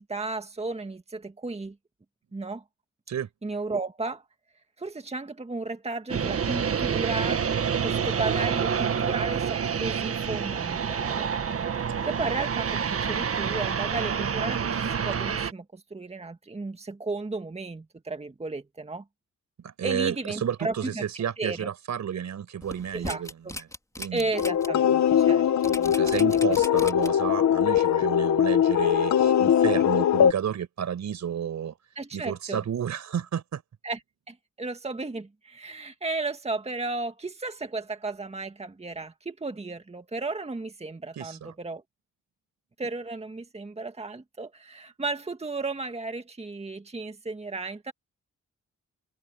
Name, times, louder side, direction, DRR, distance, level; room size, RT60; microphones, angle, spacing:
voice 1, 0.0-1.8 2.3-2.6 3.4-4.2 4.8-7.4 7.8-11.3 12.1-19.0 19.8-21.0 21.4-21.7 22.9-23.6 24.1-26.1 26.5-26.6 32.0-32.6 33.8-34.0 34.3-41.8 42.8-47.9, right 3 dB, 20° right, 1.9 m, -34 dB
sound 1, 6.1-15.5, right 7 dB, 50° right, 1.6 m, -28 dB
voice 2, 19.6-23.3 24.0-24.3 26.0-31.8 32.1-33.6 41.2-41.5, right 8 dB, 70° right, 5.3 m, -31 dB
sound 2, 22.6-24.7 25.1-25.2 25.6-27.3 27.7-27.8, left 1 dB, 10° left, 3.5 m, -38 dB
sound 3, 24.3-30.3, left 9 dB, 70° left, 1.2 m, -21 dB
cardioid pair, 75°, 29 cm